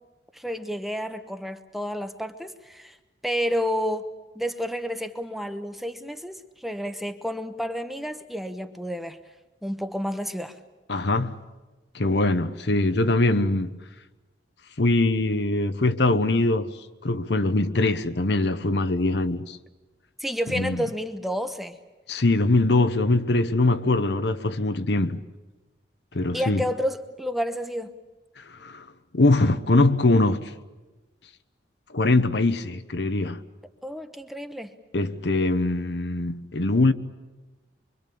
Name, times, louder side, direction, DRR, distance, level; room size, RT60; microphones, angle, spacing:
voice 1, 0.3-3.0 3.2-4.1 4.3-9.2 9.6-10.6 20.2-21.8 26.3-27.9 33.8-34.8, equal, ahead, 1.0 m, -30 dB
voice 2, 10.9-11.3 11.9-13.8 14.8-16.8 17.0-19.6 20.5-20.9 22.1-25.2 26.1-26.6 28.4-28.9 29.1-30.5 31.9-33.4 34.9-36.9, left 2 dB, 65° left, 1.0 m, -22 dB
25.0 x 24.0 x 8.5 m
head